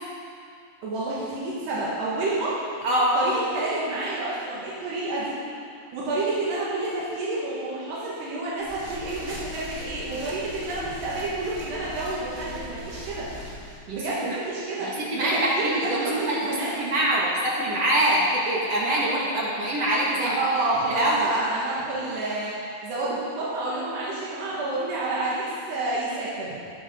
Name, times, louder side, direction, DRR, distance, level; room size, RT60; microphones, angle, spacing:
voice 1, 0.8-2.6 3.2-5.3 5.9-13.3 13.9-15.3 15.5-16.8 20.2-26.6, right 2 dB, 75° right, -7 dB, 3.9 m, -29 dB
voice 2, 2.8-3.2 13.9-14.4 14.8-20.4 20.8-21.3, right 1 dB, 45° right, -5 dB, 2.6 m, -24 dB
sound 1, 8.6-13.8, left 1 dB, 20° right, 2.2 m, -40 dB
20.0 x 10.5 x 4.0 m, 2.4 s
omnidirectional pair, 4.9 m